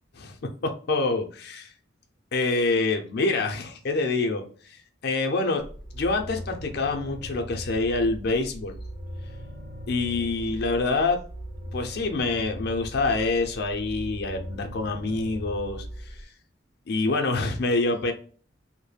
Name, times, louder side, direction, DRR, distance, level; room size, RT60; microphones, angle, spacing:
voice 1, 0.6-1.7 2.3-4.4 5.0-5.6 5.9-8.7 9.9-11.2 11.7-16.2 16.9-18.1, left 3 dB, 55° left, 4 dB, 0.5 m, -26 dB
sound 1, 5.6-16.2, equal, 50° right, 0.6 m, -39 dB
2.2 x 2.1 x 3.1 m, 0.42 s
head